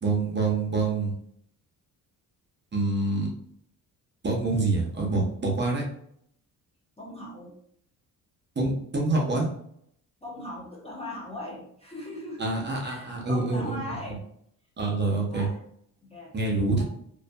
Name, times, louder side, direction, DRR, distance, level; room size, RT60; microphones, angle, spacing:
voice 1, 0.0-1.1 2.7-3.3 4.2-5.8 8.6-9.5 12.4-13.8 14.8-15.5 16.3-16.8, right 3 dB, 30° right, -1 dB, 0.7 m, -26 dB
voice 2, 7.0-7.6 10.2-14.2 15.3-15.6 16.0-16.3 16.8-16.9, left 1 dB, 15° left, -4 dB, 0.5 m, -39 dB
2.5 x 2.5 x 2.2 m, 0.69 s
cardioid pair, 115°, 37 cm